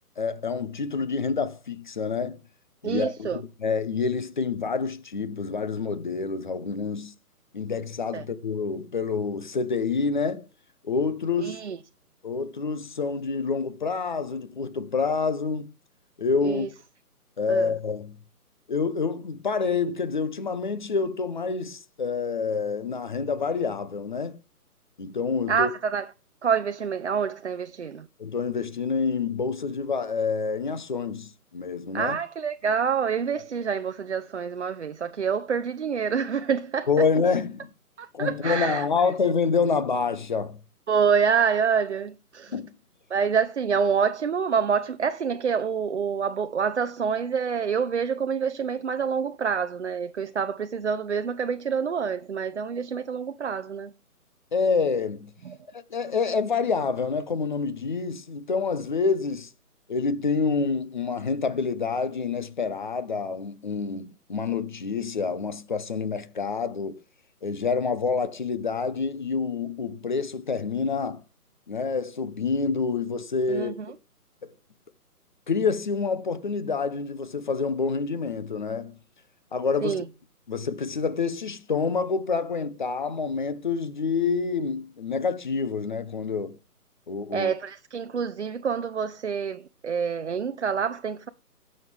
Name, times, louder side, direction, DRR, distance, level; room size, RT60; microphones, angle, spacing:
voice 1, 0.2-2.4 2.8-7.1 7.5-10.5 10.8-11.6 12.2-15.7 16.2-16.7 17.4-18.2 18.7-24.4 25.0-25.7 28.2-32.2 36.9-37.7 38.1-40.6 42.5-42.7 54.5-55.3 55.7-59.5 59.9-67.0 67.4-71.2 71.7-73.8 74.4-74.5 75.5-78.9 79.5-80.0 80.5-86.6 87.1-87.5, left 5 dB, 30° left, 0.8 m, -27 dB
voice 2, 2.8-3.4 8.1-8.2 11.4-11.8 16.4-16.7 17.5-17.7 25.5-26.1 26.4-28.1 31.9-36.9 38.0-38.9 40.9-42.5 43.1-53.9 55.4-55.6 73.5-73.9 79.8-80.0 87.3-91.3, right 6 dB, 50° right, 0.6 m, -27 dB
16.0 x 6.5 x 3.4 m
hypercardioid pair, 160°, 46 cm